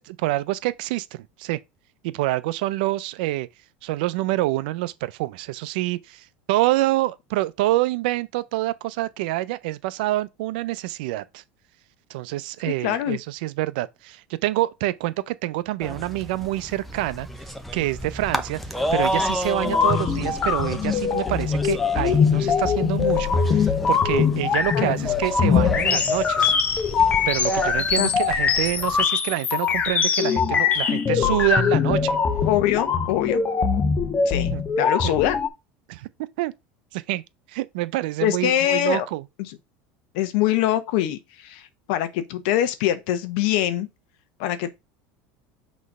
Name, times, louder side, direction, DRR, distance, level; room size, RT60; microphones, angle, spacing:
voice 1, 0.0-1.6 2.0-3.5 3.8-11.4 12.1-17.3 17.7-18.6 18.9-26.5 27.3-32.2 34.5-34.6 35.0-35.2 35.9-36.1 36.4-36.5 36.9-37.2 37.5-39.2, right 17 dB, 75° right, 0.6 m, -26 dB
voice 2, 12.8-13.2 24.7-25.1 28.0-28.1 32.4-33.4 34.3-34.5 34.8-35.4 38.2-39.1 39.4-39.5 40.1-43.9 44.4-44.7, left 12 dB, 70° left, 1.0 m, -23 dB
sound 1, 15.8-29.1, equal, ahead, 0.8 m, -32 dB
sound 2, 19.6-35.5, left 6 dB, 30° left, 1.0 m, -22 dB
6.2 x 3.1 x 5.4 m
supercardioid pair, 130°, 5 cm